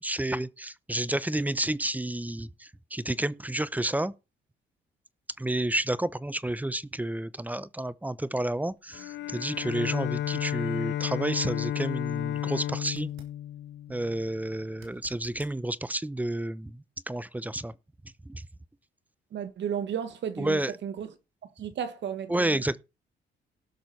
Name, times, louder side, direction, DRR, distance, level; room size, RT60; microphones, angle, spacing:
voice 1, 0.0-4.1 5.4-13.1 13.9-17.7 18.2-18.4 20.4-20.7 22.3-22.8, right 1 dB, 10° right, 0.6 m, -30 dB
Bowed string instrument, 8.9-14.5, left 12 dB, 65° left, 0.6 m, -33 dB
sound 1, 12.8-13.4 14.7-15.6 18.6-18.7, right 6 dB, 80° right, 3.2 m, -54 dB
voice 2, 19.3-21.1 21.6-22.6, right 8 dB, 65° right, 1.5 m, -34 dB
18.0 x 6.1 x 4.1 m
cardioid pair, 90°, 20 cm